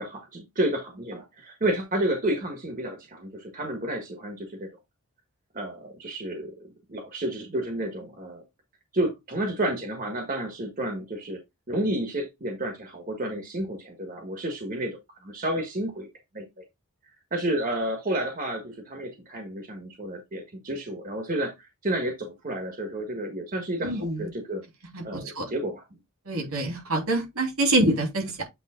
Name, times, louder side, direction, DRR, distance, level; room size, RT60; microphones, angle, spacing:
voice 1, 0.0-4.7 5.5-8.4 8.9-11.4 11.7-16.1 16.3-16.4 17.3-24.6 25.0-25.8 26.3-26.5, right 1 dB, 40° right, 1.4 m, -31 dB
voice 2, 23.8-24.3 24.9-25.4 26.2-28.4, right 2 dB, 80° right, 3.3 m, -26 dB
8.2 x 3.6 x 3.7 m
head